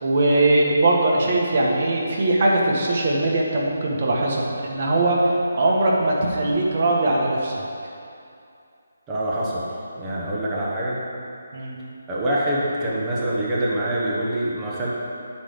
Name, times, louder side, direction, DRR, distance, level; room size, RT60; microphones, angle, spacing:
voice 1, 0.0-7.5 11.5-11.8, right 2 dB, 45° right, -2 dB, 1.5 m, -20 dB
voice 2, 9.1-9.6 10.0-11.0 12.1-14.9, right 1 dB, 15° right, -6 dB, 1.4 m, -25 dB
10.0 x 3.5 x 6.8 m, 2.5 s
figure-of-eight pair, 160°, 0 cm